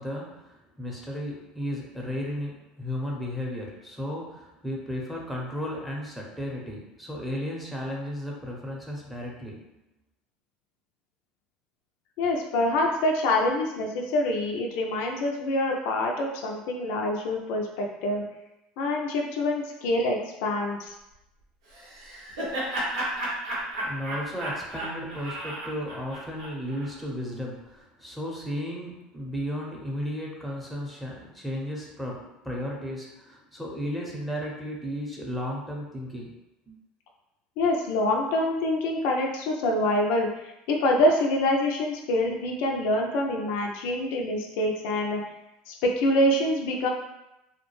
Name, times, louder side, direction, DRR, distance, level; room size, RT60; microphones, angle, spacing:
voice 1, 0.0-9.6 23.8-36.3 36.7-36.8, equal, ahead, -2 dB, 0.7 m, -34 dB
voice 2, 12.2-18.2 18.8-20.9 37.6-40.3 40.7-45.2 45.7-46.9, left 1 dB, 65° left, 0 dB, 0.4 m, -25 dB
Laughter, 21.7-26.9, right 1 dB, 80° right, 0.8 m, -33 dB
2.3 x 2.1 x 3.0 m, 0.93 s
hypercardioid pair, 85°, 4 cm